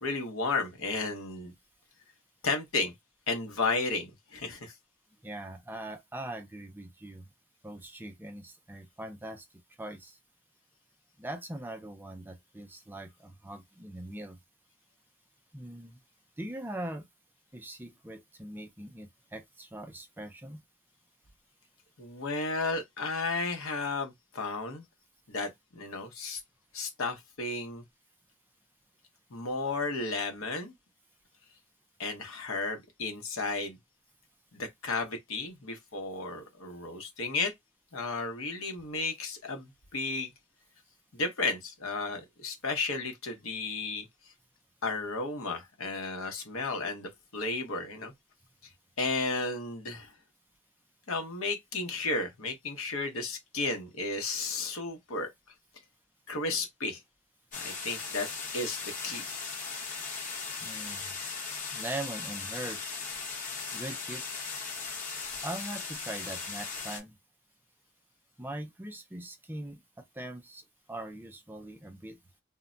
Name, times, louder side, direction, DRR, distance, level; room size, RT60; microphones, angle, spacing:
voice 1, 0.0-1.5 2.4-2.9 3.3-4.7 22.0-24.9 25.3-26.4 26.7-27.8 29.3-30.7 32.0-33.8 34.5-37.5 37.9-40.3 41.1-44.1 44.8-48.1 49.0-50.1 51.1-55.3 56.3-57.0 57.5-58.3 58.5-58.8 59.0-59.4, left 3 dB, 75° left, 0.8 m, -33 dB
voice 2, 5.2-7.3 7.6-9.5 9.8-10.2 11.2-14.4 15.5-16.0 16.4-17.1 17.5-20.6 60.6-61.2 61.7-63.0 63.7-64.2 65.4-67.2 68.4-72.2, right 1 dB, 10° right, 0.4 m, -41 dB
sound 1, 57.5-67.0, left 4 dB, 40° left, 1.0 m, -38 dB
2.1 x 2.1 x 3.7 m
head